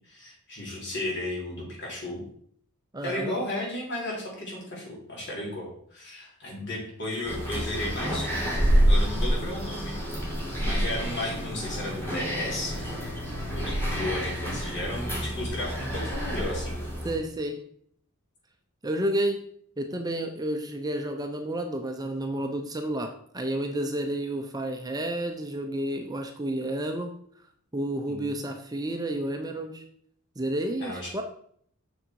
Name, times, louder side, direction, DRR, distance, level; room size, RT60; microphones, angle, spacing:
voice 1, 0.1-2.2 3.0-8.6 8.9-10.0 10.6-13.0 13.5-16.8 28.1-28.3 30.8-31.1, left 1 dB, 55° left, -4 dB, 3.8 m, -34 dB
voice 2, 2.9-3.4 17.0-17.6 18.8-19.4 19.8-27.1 27.7-29.8 30.4-31.2, right 1 dB, 15° right, 5 dB, 0.6 m, -30 dB
sound 1, 7.2-17.2, equal, 10° left, 2.8 m, -28 dB
7.0 x 6.5 x 4.6 m, 0.64 s
head